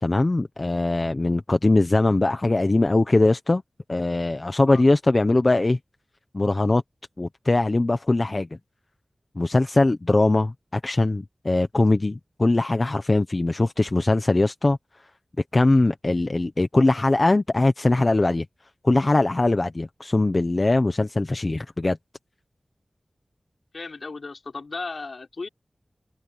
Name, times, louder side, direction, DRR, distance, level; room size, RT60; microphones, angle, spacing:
voice 1, 0.0-3.6 3.9-5.8 6.3-6.8 7.2-8.5 9.4-14.8 15.5-18.4 18.8-22.0, left 2 dB, 40° left, 1.1 m, -21 dB
voice 2, 23.7-25.5, left 3 dB, 65° left, 4.6 m, -35 dB
wide cardioid pair, 75°, 0 cm